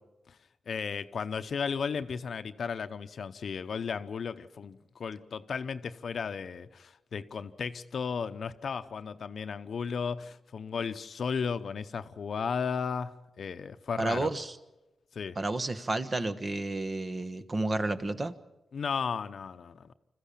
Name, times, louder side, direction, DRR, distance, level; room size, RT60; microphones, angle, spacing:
voice 1, 0.7-14.3 15.1-15.4 18.7-19.9, left 6 dB, 70° left, 11 dB, 0.8 m, -34 dB
voice 2, 14.0-14.5 15.4-18.3, right 2 dB, 35° right, 11 dB, 1.2 m, -31 dB
26.0 x 14.5 x 8.5 m, 0.99 s
wide cardioid pair, 95°, 0 cm